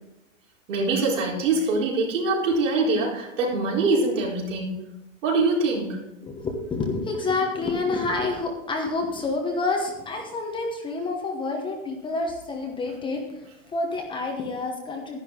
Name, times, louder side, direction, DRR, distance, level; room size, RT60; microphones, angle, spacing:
voice 1, 0.7-4.8 5.2-6.0, right 3 dB, 65° right, -2 dB, 4.2 m, -24 dB
voice 2, 6.2-15.2, left 3 dB, 10° left, 2 dB, 1.1 m, -28 dB
11.0 x 10.5 x 3.7 m, 0.96 s
hypercardioid pair, 145°, 39 cm